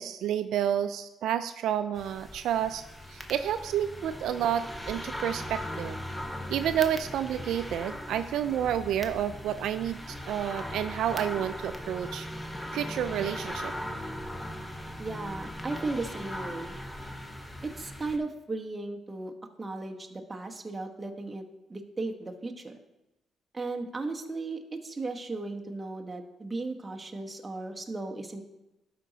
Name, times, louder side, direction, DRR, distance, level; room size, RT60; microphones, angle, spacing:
voice 1, 0.0-2.8 3.1-6.0 6.5-12.3 12.7-13.7, right 10 dB, 80° right, 11 dB, 0.3 m, -30 dB
sound 1, 1.9-18.2, left 1 dB, 10° left, 0.9 m, -39 dB
voice 2, 15.0-16.7 17.6-19.3 19.6-21.4 21.7-22.8 23.5-28.4, right 3 dB, 20° right, 3 dB, 1.0 m, -36 dB
12.0 x 5.0 x 3.9 m, 0.98 s
cardioid pair, 90°, 0 cm